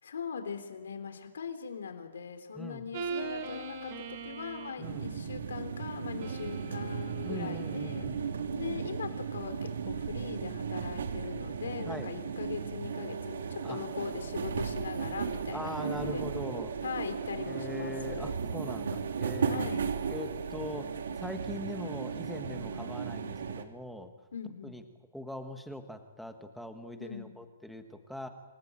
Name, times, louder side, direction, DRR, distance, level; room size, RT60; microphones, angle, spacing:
voice 1, 0.0-16.2 16.8-18.4 19.5-19.8 24.3-24.8 27.0-27.3, left 6 dB, 80° left, 7 dB, 3.5 m, -40 dB
voice 2, 2.5-2.8 4.8-5.1 7.2-8.4 11.9-12.1 13.6-13.8 15.5-16.7 17.4-19.7 20.1-20.9 21.2-24.1 24.6-24.8 25.1-28.3, left 1 dB, ahead, 5 dB, 1.5 m, -41 dB
sound 1, 2.9-4.9 6.2-8.0, right 4 dB, 30° right, 4.0 m, -40 dB
sound 2, 4.8-23.6, right 6 dB, 70° right, 3.0 m, -35 dB
28.5 x 19.5 x 9.0 m, 1.2 s
hypercardioid pair, 175°, 0 cm